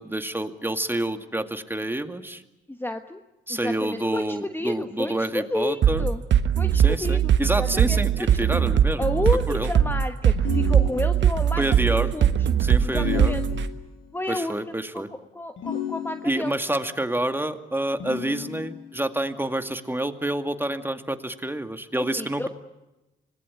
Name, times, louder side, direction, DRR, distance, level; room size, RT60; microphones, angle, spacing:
voice 1, 0.0-2.4 3.5-6.0 6.8-9.1 9.5-9.7 11.6-12.1 12.6-13.3 14.3-15.1 16.2-22.5, right 1 dB, 10° right, 7 dB, 2.2 m, -28 dB
voice 2, 2.7-3.2 3.5-6.2 6.6-8.3 9.0-11.6 11.9-12.3 12.8-13.4 14.1-14.6 14.9-16.6 22.0-22.5, left 1 dB, 10° left, 7 dB, 1.3 m, -31 dB
sound 1, 5.8-13.7, right 9 dB, 60° right, 1.5 m, -20 dB
sound 2, 10.3-11.5 12.9-14.1 15.6-16.6 18.0-19.0, left 9 dB, 65° left, 7.2 m, -33 dB
25.5 x 19.5 x 9.6 m, 1.0 s
hypercardioid pair, 50°, 21 cm